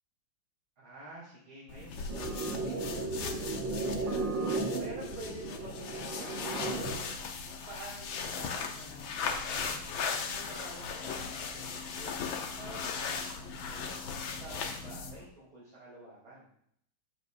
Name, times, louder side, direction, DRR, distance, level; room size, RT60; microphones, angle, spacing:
voice 1, 0.8-7.0 7.5-16.5, right 1 dB, 90° right, -9 dB, 4.1 m, -50 dB
sound 1, 1.7-15.3, left 5 dB, 80° left, 1.7 m, -38 dB
sound 2, 2.1-7.1, right 3 dB, 70° right, 1.8 m, -35 dB
13.0 x 7.5 x 2.6 m, 0.67 s
omnidirectional pair, 2.2 m